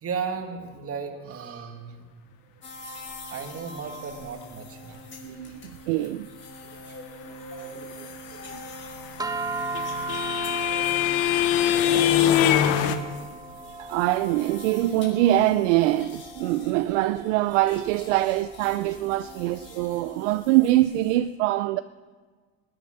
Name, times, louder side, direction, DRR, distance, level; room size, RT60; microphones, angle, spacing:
voice 1, 0.0-2.0 3.3-5.0 5.4-5.7 8.0-8.4, right 6 dB, 40° right, 2.1 m, -35 dB
sound 1, 2.6-21.2, left 1 dB, 30° left, 5.2 m, -44 dB
voice 2, 5.2-5.6 5.9-6.3 6.9-7.0 7.5-8.1 8.5-8.6 11.6-12.1 12.5-12.7 13.7-21.8, right 15 dB, 80° right, 0.6 m, -24 dB
sound 2, 9.1-13.0, left 11 dB, 70° left, 1.2 m, -22 dB
sound 3, 9.2-19.7, right 3 dB, 10° right, 1.0 m, -37 dB
19.5 x 9.1 x 6.3 m
supercardioid pair, 90°, 37 cm